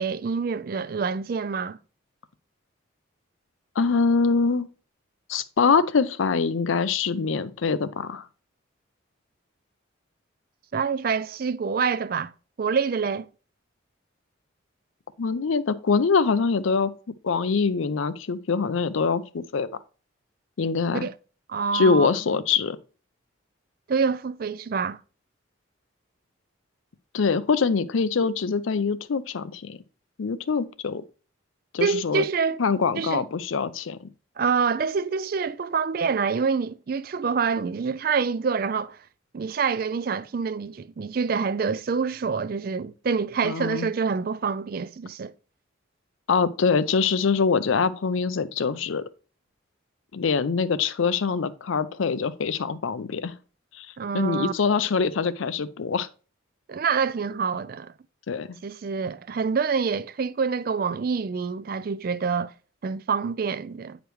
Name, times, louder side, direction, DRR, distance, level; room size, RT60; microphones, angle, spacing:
voice 1, 0.0-1.8 10.7-12.3 12.6-13.3 20.9-21.1 21.5-22.1 23.9-25.0 31.8-32.6 32.9-33.2 34.4-39.0 39.3-45.3 54.0-54.5 56.7-57.9 58.6-62.5 62.8-64.0, right 5 dB, 45° right, 0.4 m, -26 dB
voice 2, 3.8-4.7 5.3-8.2 15.2-16.9 17.2-19.7 20.6-21.1 21.7-22.8 27.1-29.8 30.2-31.0 31.7-32.2 32.6-34.1 43.4-43.9 46.3-49.0 50.1-53.3 53.7-53.9 54.1-56.1 58.3-58.6, left 5 dB, 75° left, 0.5 m, -24 dB
9.0 x 5.1 x 3.1 m
head